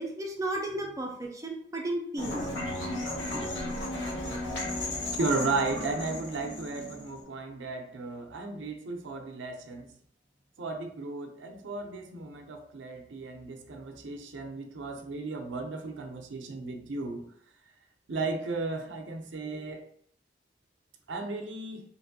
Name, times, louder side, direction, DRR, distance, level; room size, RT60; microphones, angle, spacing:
voice 1, 0.0-2.5, right 1 dB, 15° right, 0 dB, 0.5 m, -34 dB
sound 1, 2.2-7.2, left 1 dB, 90° left, 1.1 m, -34 dB
voice 2, 5.2-9.9 10.6-17.3 18.1-19.9 21.1-21.8, right 3 dB, 85° right, 5 dB, 0.5 m, -34 dB
2.8 x 2.5 x 2.6 m, 0.64 s
head